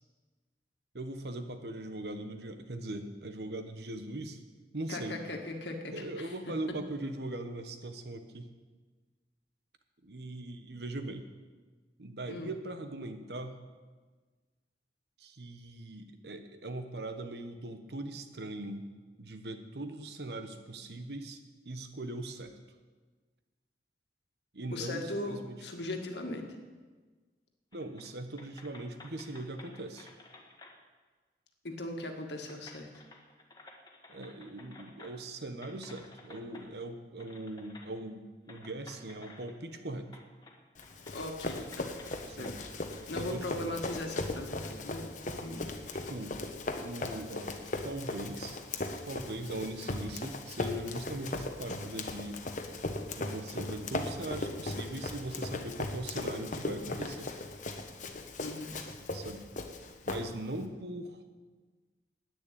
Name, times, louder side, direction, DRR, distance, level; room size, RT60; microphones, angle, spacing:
voice 1, 0.9-4.4 4.7-5.2 5.9-8.5 10.0-11.2 12.0-13.5 15.2-18.9 19.2-21.4 21.6-22.5 24.5-25.0 25.3-25.6 27.7-30.1 34.1-40.1 42.3-42.6 43.2-43.7 46.1-46.4 46.8-48.6 49.0-52.4 53.2-57.3 59.1-59.5 60.1-61.2, right 2 dB, 65° right, 8 dB, 1.2 m, -40 dB
voice 2, 4.9-6.3 12.3-12.5 24.7-26.4 31.6-32.9 41.1-41.9 42.4-42.6 43.1-45.7 58.4-58.7, left 2 dB, 75° left, 4 dB, 1.8 m, -39 dB
sound 1, 27.7-28.1 28.4-30.8 31.9-32.0 32.4-35.3 35.6-36.7 37.2-37.9 38.5-39.8 40.1-40.6 40.8-43.3, left 3 dB, 25° left, 1.6 m, -54 dB
Run, 40.8-60.6, left 2 dB, 45° left, 1.1 m, -38 dB
10.5 x 9.5 x 8.7 m, 1.4 s
head